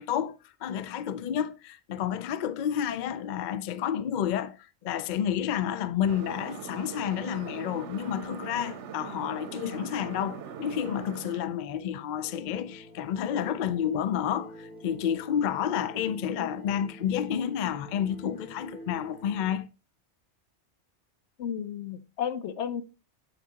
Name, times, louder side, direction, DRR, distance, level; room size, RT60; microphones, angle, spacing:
voice 1, 0.0-4.6 4.8-19.7, left 9 dB, 60° left, 0.5 m, -30 dB
sound 1, 6.1-11.4, right 7 dB, 85° right, 1.0 m, -41 dB
sound 2, 12.1-19.6, equal, 10° left, 1.6 m, -47 dB
voice 2, 21.4-22.8, left 8 dB, 80° left, 0.9 m, -33 dB
8.0 x 5.9 x 2.8 m
omnidirectional pair, 1.2 m